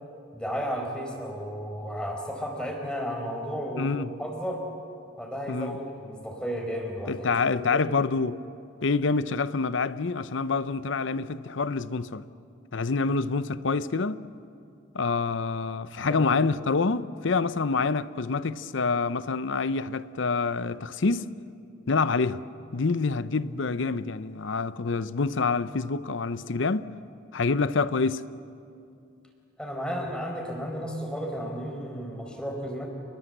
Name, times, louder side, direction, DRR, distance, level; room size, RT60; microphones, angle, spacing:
voice 1, 0.3-4.6 5.2-7.1 7.7-7.9 16.1-16.3 29.6-32.9, equal, 5° left, 4.5 m, -33 dB
voice 2, 3.8-4.1 5.5-5.8 7.1-8.4 8.8-12.3 12.7-14.3 14.9-21.3 21.9-22.4 22.7-26.9 27.3-28.3, left 4 dB, 70° left, 0.7 m, -27 dB
28.0 x 21.0 x 7.9 m
head